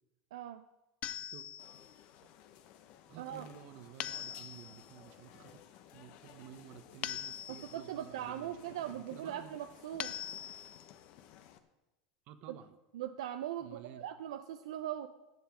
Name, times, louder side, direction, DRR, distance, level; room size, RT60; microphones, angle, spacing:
voice 1, 0.3-0.6 3.2-3.5 7.5-10.1 12.9-15.1, right 11 dB, 85° right, 9 dB, 0.5 m, -40 dB
sound 1, 1.0-1.9 4.0-4.9 7.0-7.9 10.0-10.9, left 11 dB, 40° left, 0.4 m, -42 dB
sound 2, 1.6-11.6, left 10 dB, 60° left, 1.0 m, -57 dB
voice 2, 3.1-5.6 5.9-9.5 12.3-12.8 13.6-14.0, right 10 dB, 55° right, 10 dB, 1.0 m, -52 dB
11.0 x 7.3 x 6.1 m, 1.0 s
supercardioid pair, 115°, 3 cm